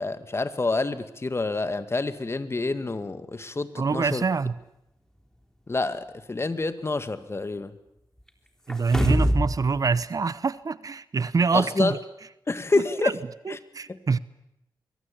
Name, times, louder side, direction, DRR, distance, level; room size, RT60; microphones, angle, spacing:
voice 1, 0.0-4.2 5.7-7.7 11.5-12.0 12.5-13.2 13.5-13.6 13.9-14.2, left 3 dB, 35° left, 2.0 m, -28 dB
voice 2, 3.8-4.5 8.7-12.0 13.0-13.1 13.5-14.2, right 4 dB, 50° right, 0.9 m, -25 dB
sound 1, 8.7-9.6 9.9-10.0, equal, 5° left, 3.6 m, -23 dB
24.5 x 21.5 x 8.8 m
cardioid pair, 70°, 7 cm